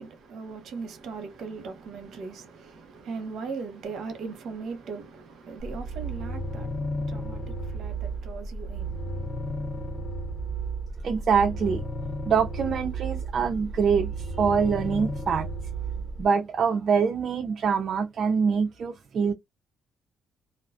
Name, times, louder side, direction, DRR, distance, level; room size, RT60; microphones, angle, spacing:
voice 1, 0.0-10.0, right 4 dB, 70° right, 0.8 m, -39 dB
sound 1, 5.6-16.2, right 2 dB, 55° left, 0.7 m, -33 dB
voice 2, 11.0-11.8 12.2-15.5 16.2-19.3, right 6 dB, 55° right, 0.3 m, -24 dB
2.4 x 2.2 x 2.4 m
cardioid pair, 90°, 0 cm